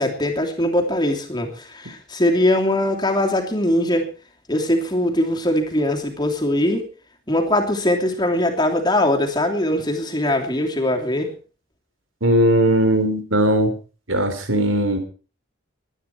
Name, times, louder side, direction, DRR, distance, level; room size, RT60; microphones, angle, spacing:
voice 1, 0.0-4.1 4.5-6.8 7.3-11.3, left 1 dB, 20° left, 2 dB, 2.9 m, -21 dB
voice 2, 12.2-13.7 14.1-15.0, right 1 dB, 75° right, 8 dB, 3.7 m, -18 dB
22.0 x 10.0 x 4.5 m, 0.36 s
head